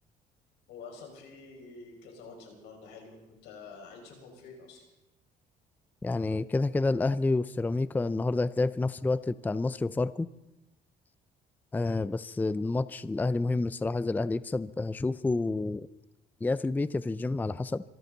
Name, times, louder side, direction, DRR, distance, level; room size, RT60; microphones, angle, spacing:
voice 1, 0.7-4.9, left 4 dB, 85° left, 2 dB, 5.4 m, -48 dB
voice 2, 6.0-10.3 11.7-15.9 16.4-17.8, left 3 dB, 10° left, 16 dB, 0.4 m, -29 dB
26.0 x 14.0 x 4.0 m, 0.97 s
cardioid pair, 110°, 17 cm